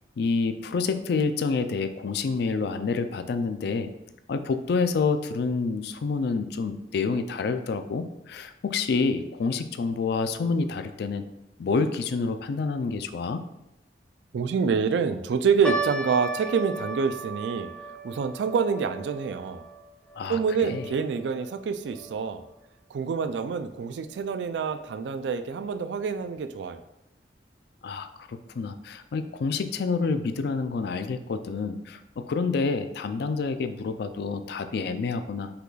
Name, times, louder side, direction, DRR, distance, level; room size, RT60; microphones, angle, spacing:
voice 1, 0.2-3.9 4.3-11.2 11.6-13.4 20.2-20.9 27.8-35.5, left 4 dB, 60° left, 10 dB, 0.3 m, -28 dB
voice 2, 14.3-17.7 18.0-19.6 20.3-22.4 22.9-26.8, right 6 dB, 70° right, 9 dB, 0.3 m, -27 dB
sound 1, 15.6-22.1 22.4-22.5 23.3-23.5 24.1-24.2 24.6-24.8, right 2 dB, 5° left, 0.5 m, -36 dB
5.5 x 2.3 x 3.9 m, 0.87 s
head